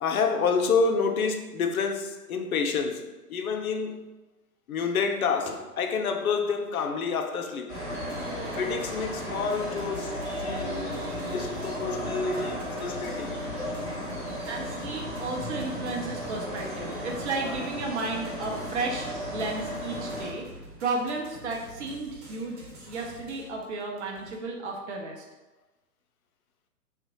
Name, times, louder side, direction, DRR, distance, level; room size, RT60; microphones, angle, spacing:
voice 1, 0.0-4.1 4.7-7.8 8.5-10.8 11.3-13.4, left 5 dB, 65° left, 0.5 m, -28 dB
sound 1, 7.7-20.3, equal, 5° left, 0.7 m, -34 dB
sound 2, 7.7-24.4, right 1 dB, 70° right, 1.0 m, -47 dB
voice 2, 14.5-20.5 20.8-25.2, right 3 dB, 50° right, 0.6 m, -33 dB
2.9 x 2.1 x 2.8 m
figure-of-eight pair, 125°, 47 cm